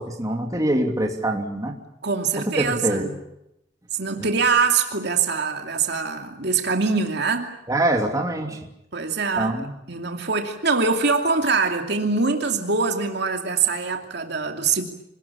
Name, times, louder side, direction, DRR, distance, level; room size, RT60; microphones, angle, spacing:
voice 1, 0.0-1.7 2.4-3.1 7.7-8.7 9.4-9.7, right 1 dB, 20° right, 2 dB, 2.8 m, -24 dB
voice 2, 2.0-3.2 3.9-7.5 8.9-9.5 9.9-14.8, right 4 dB, 65° right, 4 dB, 2.6 m, -23 dB
26.5 x 19.5 x 8.5 m, 0.84 s
head